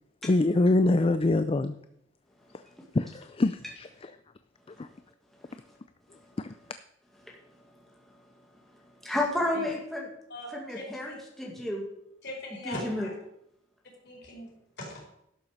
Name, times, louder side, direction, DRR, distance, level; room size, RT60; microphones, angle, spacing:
voice 1, 0.2-1.7 2.9-4.1 4.8-4.9 6.4-6.5, left 2 dB, 30° left, 11 dB, 0.4 m, -25 dB
voice 2, 9.0-10.1 10.5-11.8 12.6-13.1, left 1 dB, ahead, -2 dB, 2.0 m, -31 dB
voice 3, 10.3-11.2 12.2-13.1 14.0-15.0, left 1 dB, 60° left, -1 dB, 4.7 m, -41 dB
12.0 x 7.0 x 6.5 m, 0.78 s
head